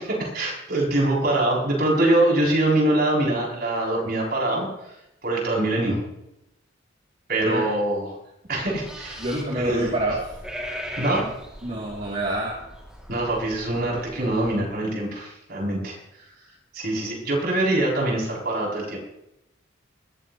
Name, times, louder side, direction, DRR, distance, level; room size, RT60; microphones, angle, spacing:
voice 1, 0.0-5.0 5.2-6.0 7.3-8.1 8.5-9.2 9.5-9.9 11.0-11.3 13.1-16.3 16.7-19.0, right 1 dB, 50° right, -3 dB, 7.1 m, -24 dB
sound 1, 8.5-14.7, equal, 5° right, 2.5 m, -39 dB
voice 2, 9.2-10.3 11.6-12.5, right 1 dB, 35° right, -4 dB, 2.8 m, -27 dB
21.5 x 15.5 x 3.1 m, 0.88 s
head